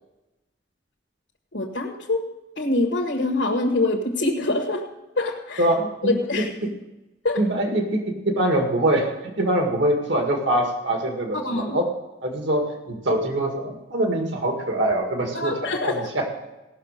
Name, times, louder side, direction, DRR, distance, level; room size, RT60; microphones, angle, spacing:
voice 1, 1.5-2.3 2.6-4.8 5.2-5.6 6.0-6.5 7.2-7.4 11.4-11.8 15.3-15.9, left 2 dB, 85° left, -2 dB, 1.5 m, -24 dB
voice 2, 5.6-6.1 7.4-11.9 12.2-16.3, right 1 dB, 90° right, 3 dB, 1.9 m, -24 dB
17.5 x 6.5 x 6.7 m, 1.0 s
head